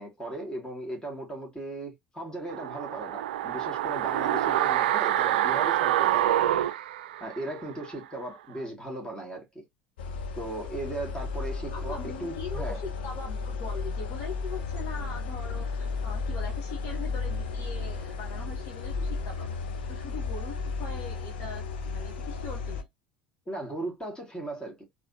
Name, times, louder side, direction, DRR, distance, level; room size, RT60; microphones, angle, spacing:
voice 1, 0.0-6.6 7.2-9.6 10.4-12.8 23.5-24.8, right 1 dB, 15° left, 2.5 m, -37 dB
sound 1, 2.5-7.6 7.9-8.0, right 13 dB, 65° right, 0.3 m, -26 dB
sound 2, 10.0-22.8, left 4 dB, 65° left, 0.8 m, -34 dB
voice 2, 11.7-19.5 19.9-22.9, left 4 dB, 50° left, 1.4 m, -41 dB
4.1 x 3.4 x 2.9 m
figure-of-eight pair, 70°, 6 cm